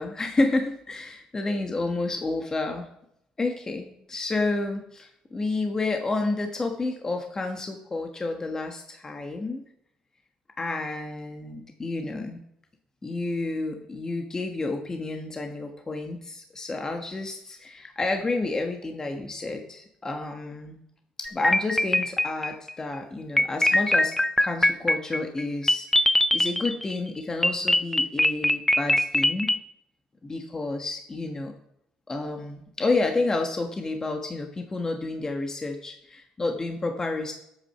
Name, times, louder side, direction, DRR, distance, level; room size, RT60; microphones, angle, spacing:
voice 1, 0.0-2.9 3.4-9.6 10.6-12.4 13.0-20.8 21.2-24.1 24.4-29.5 30.2-31.5 32.1-37.3, left 2 dB, 25° left, 4 dB, 1.3 m, -30 dB
sound 1, 21.3-22.7 23.4-26.9 27.4-29.6, left 1 dB, 10° left, 0.6 m, -22 dB
8.5 x 8.1 x 5.8 m, 0.78 s
cardioid pair, 85°, 2 cm